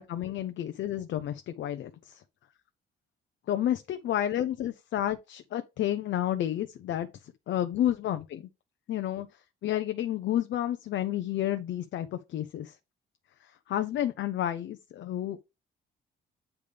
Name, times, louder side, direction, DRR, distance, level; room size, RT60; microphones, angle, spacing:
voice 1, 0.0-2.2 3.5-8.5 8.9-9.3 9.6-12.8 13.4-15.4, left 11 dB, 70° left, 0.8 m, -31 dB
8.3 x 3.5 x 5.1 m
cardioid pair, 90°, 20 cm